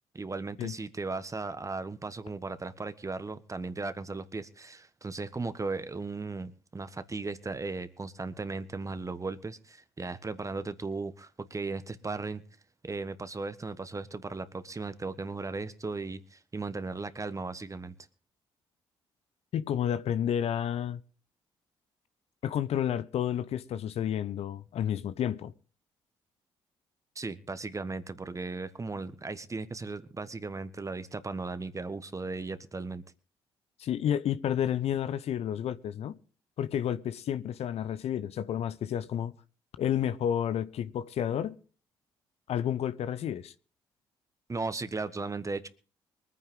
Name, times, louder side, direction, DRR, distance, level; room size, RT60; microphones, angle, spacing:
voice 1, 0.1-12.4 12.8-17.9 27.1-33.0 44.5-45.7, right 3 dB, 25° right, 1.5 m, -36 dB
voice 2, 19.5-21.0 22.4-25.5 33.8-36.2 36.6-39.3 39.8-41.6 42.5-43.5, left 10 dB, 55° left, 0.7 m, -30 dB
23.5 x 9.5 x 3.8 m
hypercardioid pair, 45°, 12 cm